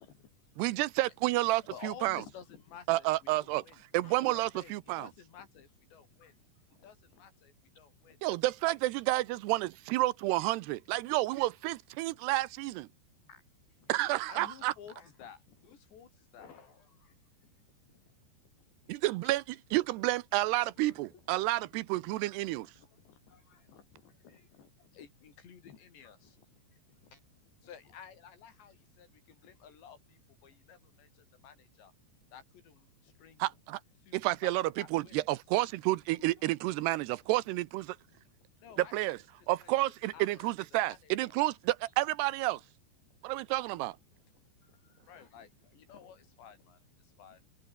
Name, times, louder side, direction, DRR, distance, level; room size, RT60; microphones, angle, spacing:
voice 1, 0.0-0.5 1.7-3.8 4.3-8.4 8.6-8.8 13.8-13.9 14.3-16.5 17.9-18.3 18.6-19.0 22.8-27.1 27.6-31.9 32.3-33.4 34.0-35.3 36.8-36.9 38.1-38.2 38.6-39.7 40.1-40.5 40.9-41.4 42.4-42.5 44.1-47.5, left 8 dB, 80° left, 5.8 m, -54 dB
voice 2, 0.6-2.2 2.9-3.6 3.9-5.1 8.2-12.9 13.9-14.7 18.9-19.4 19.7-22.7 33.4-33.8 34.1-34.6 34.9-38.0 38.9-39.2 39.5-42.6 43.2-44.0, right 18 dB, 80° right, 2.7 m, -30 dB
voice 3, 4.0-4.5 6.2-6.4 11.1-11.2 13.3-14.2 14.9-15.1 16.4-17.2 18.9-19.0 20.8-21.2 22.6-23.0 23.3-23.7 24.3-24.5 26.0-26.1 26.7-27.2 29.5-29.7 36.2-36.5 44.6-45.4, left 6 dB, 55° left, 6.8 m, -60 dB
omnidirectional pair, 5.0 m